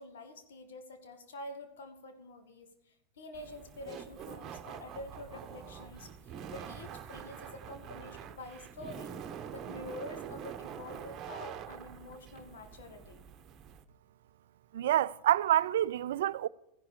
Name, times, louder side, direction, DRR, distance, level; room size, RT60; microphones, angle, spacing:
voice 1, 0.0-9.2 9.5-13.2, left 2 dB, 65° left, 2.0 m, -47 dB
Laughter, 3.3-13.8, right 8 dB, 30° right, 1.0 m, -45 dB
voice 2, 14.7-16.5, right 12 dB, 65° right, 0.4 m, -27 dB
15.0 x 11.0 x 4.9 m
figure-of-eight pair, 90°, 0 cm